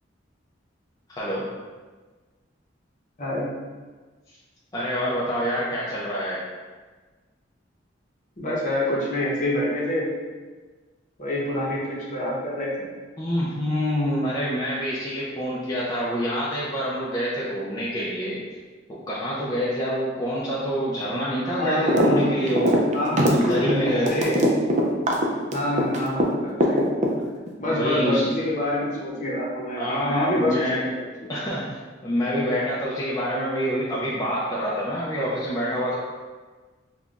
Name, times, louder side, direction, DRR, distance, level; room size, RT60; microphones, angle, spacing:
voice 1, 1.1-1.5 4.7-6.4 13.2-18.4 18.9-22.8 23.2-24.4 27.7-28.3 29.8-30.8 31.3-36.0, equal, 20° left, -8 dB, 0.4 m, -26 dB
voice 2, 3.2-3.5 8.4-10.1 11.2-11.8 12.1-12.9 21.6-22.7 22.9-24.4 25.5-26.8 27.6-31.3, left 1 dB, 45° left, -5 dB, 0.8 m, -27 dB
sound 1, 21.9-22.2 22.4-26.3 26.6-27.5, equal, 40° right, 0.4 m, -20 dB
5.4 x 2.3 x 2.4 m, 1.4 s
head